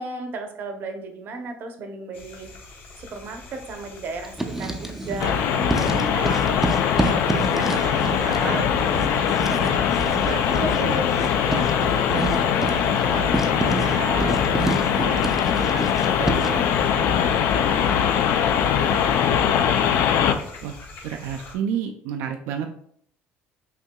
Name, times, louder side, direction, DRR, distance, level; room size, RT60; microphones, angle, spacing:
voice 1, 0.0-2.5 3.0-14.6 15.0-18.5 18.9-19.7, right 3 dB, 50° right, 5 dB, 0.7 m, -35 dB
sound 1, 2.1-21.6, left 3 dB, 50° left, 0.8 m, -42 dB
Writing, 4.2-5.4 5.7-16.7, right 2 dB, 5° right, 0.4 m, -29 dB
sound 2, 5.2-20.3, left 8 dB, 70° left, 0.4 m, -21 dB
voice 2, 21.0-22.8, right 8 dB, 85° right, 4 dB, 0.3 m, -29 dB
5.7 x 2.7 x 2.2 m, 0.65 s
cardioid pair, 135°, 5 cm